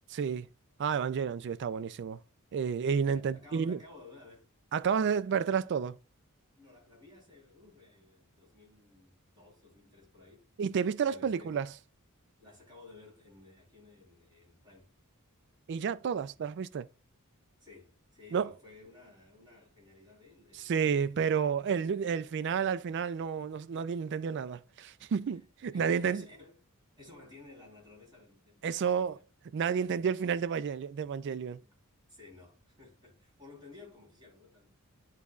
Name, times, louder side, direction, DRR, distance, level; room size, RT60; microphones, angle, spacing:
voice 1, 0.1-0.5 0.8-2.2 2.5-3.8 4.7-6.0 10.6-11.7 15.7-16.9 18.3-18.5 20.5-26.2 28.6-29.2 29.5-31.6, right 6 dB, 55° right, 0.3 m, -31 dB
voice 2, 3.0-4.5 6.6-10.5 11.0-11.6 12.4-14.9 17.6-21.4 25.3-25.4 25.7-26.5 27.0-29.2 29.8-29.9 31.6-31.8 32.1-34.7, left 3 dB, 20° right, 3.5 m, -55 dB
11.5 x 4.1 x 2.4 m
head